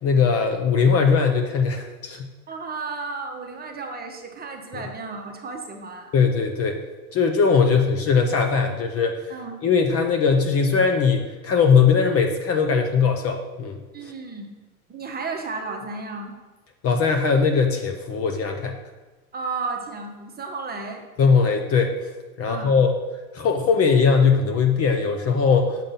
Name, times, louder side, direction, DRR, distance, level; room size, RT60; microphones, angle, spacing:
voice 1, 0.0-2.3 4.7-4.8 6.1-6.8 7.1-9.3 9.6-13.8 16.8-18.7 21.2-21.9 22.4-22.9 23.3-25.8, left 5 dB, 35° left, 4 dB, 0.7 m, -20 dB
voice 2, 2.5-6.1 9.3-9.6 13.9-14.5 14.9-16.4 19.3-21.1 22.4-22.8, right 4 dB, 20° right, 3 dB, 1.0 m, -33 dB
7.4 x 3.7 x 5.5 m, 1.2 s
hypercardioid pair, 100°, 43 cm